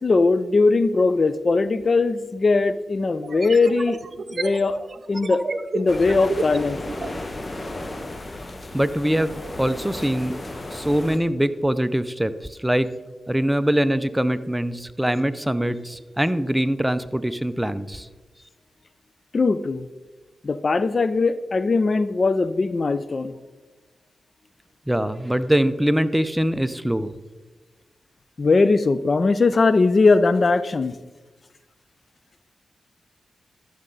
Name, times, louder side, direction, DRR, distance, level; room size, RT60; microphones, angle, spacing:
voice 1, 0.0-4.0 4.3-4.8 5.1-5.4 5.7-6.8 19.3-19.9 20.4-23.3 28.4-31.0, left 3 dB, 50° left, 14 dB, 0.5 m, -20 dB
sound 1, 1.8-1.9 3.2-7.2, right 4 dB, 55° right, 0.7 m, -31 dB
sound 2, 5.9-11.2, left 2 dB, 35° left, 1.1 m, -34 dB
voice 2, 8.7-10.4 10.7-12.9 13.3-18.1 24.9-27.1, right 1 dB, 10° right, 13 dB, 0.6 m, -23 dB
13.0 x 6.7 x 3.9 m, 1.2 s
cardioid pair, 45°, 0 cm